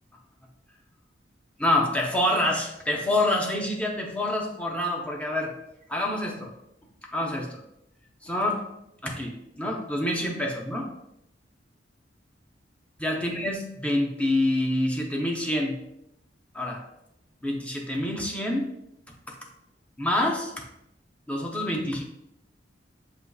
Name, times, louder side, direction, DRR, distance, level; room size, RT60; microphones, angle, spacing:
voice 1, 1.6-5.5 5.9-6.5 7.1-7.6 8.2-8.6 9.0-10.9 13.0-15.8 16.5-16.8 17.4-18.7 19.3-19.4 20.0-20.5 21.3-22.0, left 1 dB, 5° left, 0 dB, 0.7 m, -27 dB
6.7 x 3.0 x 2.3 m, 0.82 s
head